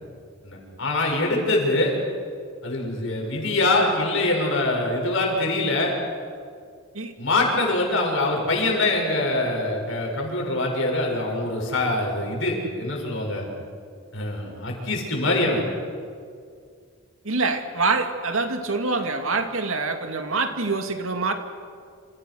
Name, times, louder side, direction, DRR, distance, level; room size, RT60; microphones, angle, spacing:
voice 1, 0.4-1.9 2.6-5.9 7.2-13.4 14.1-15.6, left 2 dB, 60° left, 0 dB, 7.1 m, -24 dB
voice 2, 17.2-21.3, right 3 dB, 70° right, 6 dB, 2.5 m, -25 dB
29.0 x 28.5 x 6.5 m, 2.2 s
head